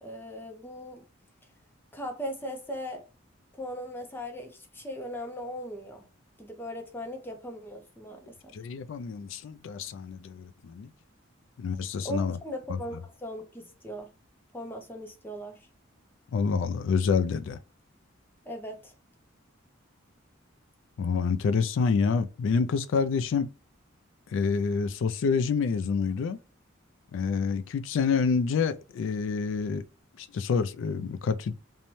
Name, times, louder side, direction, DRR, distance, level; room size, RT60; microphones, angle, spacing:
voice 1, 0.0-1.0 1.9-3.0 3.5-6.1 6.4-8.5 12.0-14.1 14.5-15.7 18.4-18.9, equal, 10° left, 0.5 m, -39 dB
voice 2, 8.5-10.9 11.6-12.4 16.3-17.6 21.0-23.5 24.3-26.4 27.1-29.8 30.2-31.5, left 5 dB, 65° left, 0.3 m, -27 dB
2.6 x 2.1 x 3.0 m
head